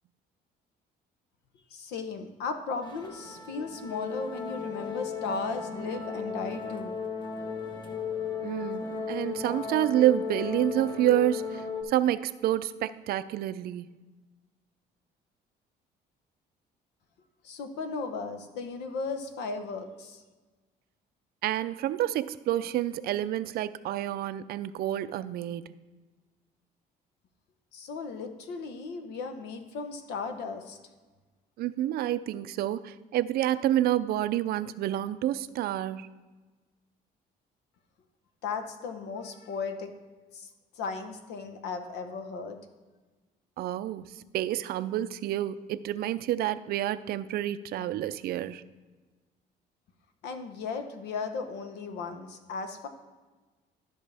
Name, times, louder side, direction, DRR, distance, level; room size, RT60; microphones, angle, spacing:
voice 1, 1.7-7.0 17.4-20.2 27.7-30.8 38.4-39.9 40.3-40.5 40.7-42.6 50.2-52.9, left 4 dB, 80° left, 7 dB, 1.0 m, -36 dB
sound 1, 2.8-11.8, left 5 dB, 25° left, 1.2 m, -35 dB
voice 2, 8.4-13.9 21.4-25.7 31.6-36.1 43.6-48.6, right 13 dB, 65° right, 14 dB, 0.4 m, -28 dB
13.0 x 5.3 x 3.4 m, 1.3 s
cardioid pair, 110°, 17 cm